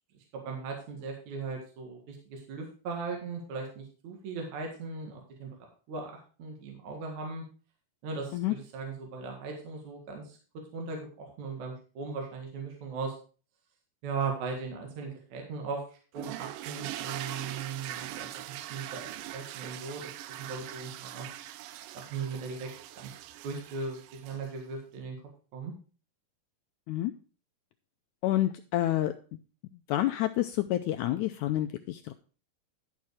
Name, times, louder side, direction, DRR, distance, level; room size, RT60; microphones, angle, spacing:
voice 1, 0.3-5.5 5.9-6.1 6.4-7.4 8.0-10.4 10.7-13.2 14.0-15.8 16.1-18.3 18.7-20.1 20.4-21.3 21.9-22.7 22.9-23.1 23.4-25.2 25.5-25.7, right 4 dB, 60° right, 1 dB, 2.9 m, -38 dB
sound 1, 16.2-24.6, right 14 dB, 80° right, 2.1 m, -42 dB
voice 2, 28.2-29.1 29.9-32.1, left 14 dB, 85° left, 8 dB, 1.7 m, -28 dB
12.0 x 5.9 x 4.8 m, 0.38 s
omnidirectional pair, 3.9 m